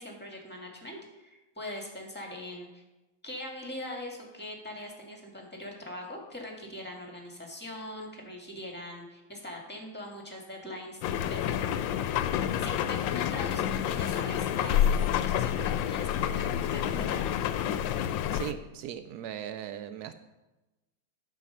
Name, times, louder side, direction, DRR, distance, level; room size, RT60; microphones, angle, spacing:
voice 1, 0.0-2.8 3.2-11.8 12.1-17.2, left 1 dB, 5° left, 0 dB, 1.7 m, -42 dB
sound 1, 11.0-18.5, left 10 dB, 75° left, 1.2 m, -28 dB
voice 2, 18.3-20.1, right 10 dB, 90° right, 10 dB, 0.8 m, -38 dB
9.1 x 7.5 x 5.6 m, 1.0 s
omnidirectional pair, 2.3 m